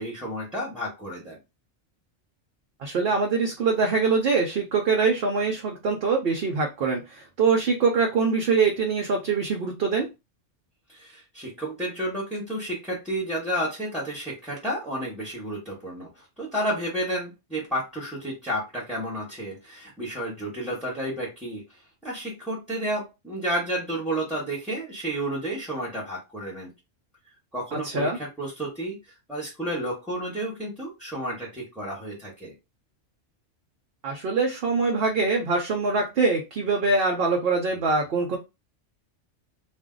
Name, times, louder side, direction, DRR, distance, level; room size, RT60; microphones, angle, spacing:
voice 1, 0.0-1.4 10.9-21.6 22.0-26.7 27.5-29.0 29.3-32.5, right 1 dB, ahead, -5 dB, 1.0 m, -31 dB
voice 2, 2.8-10.1 27.8-28.2 34.0-38.4, right 4 dB, 60° right, 1 dB, 0.8 m, -23 dB
2.5 x 2.1 x 3.7 m, 0.25 s
omnidirectional pair, 1.2 m